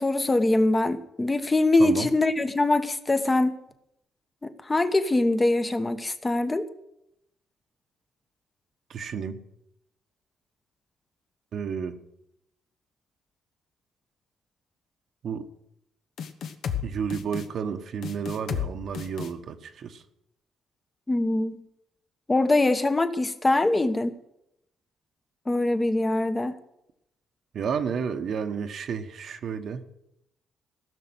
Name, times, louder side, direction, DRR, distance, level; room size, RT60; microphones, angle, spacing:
voice 1, 0.0-3.6 4.4-6.7 21.1-21.6 22.3-24.1 25.5-26.5, left 2 dB, 20° left, 10 dB, 1.1 m, -23 dB
voice 2, 1.8-2.1 8.9-9.4 11.5-12.0 15.2-15.5 16.8-20.0 27.5-29.8, right 6 dB, 60° right, 7 dB, 1.1 m, -31 dB
sound 1, 16.2-16.8 17.1-17.5 18.0-18.7 18.9-19.3, left 8 dB, 70° left, 1.2 m, -31 dB
15.5 x 6.5 x 8.0 m, 0.82 s
cardioid pair, 90°, 0 cm